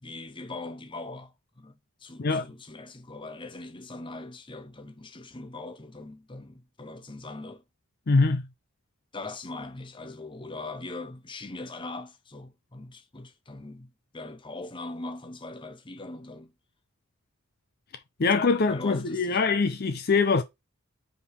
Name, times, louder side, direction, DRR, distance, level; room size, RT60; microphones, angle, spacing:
voice 1, 0.0-7.6 9.1-16.5 18.7-19.4, left 2 dB, 25° left, 0.8 m, -41 dB
voice 2, 8.1-8.4 18.2-20.4, left 4 dB, 45° left, 0.6 m, -23 dB
5.1 x 4.9 x 4.4 m
head